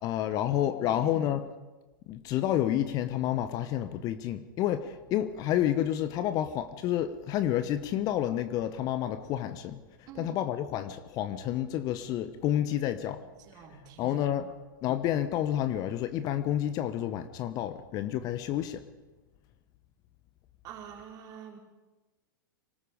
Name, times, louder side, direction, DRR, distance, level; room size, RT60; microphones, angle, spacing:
voice 1, 0.0-1.4 2.1-9.8 10.2-13.2 14.0-14.5 14.8-18.8, left 11 dB, 35° left, 12 dB, 1.0 m, -29 dB
voice 2, 0.7-1.1 10.1-10.5 13.2-14.5 20.6-21.6, right 8 dB, 35° right, 1 dB, 4.5 m, -48 dB
26.5 x 19.0 x 5.1 m, 1.2 s
figure-of-eight pair, 100°, 11 cm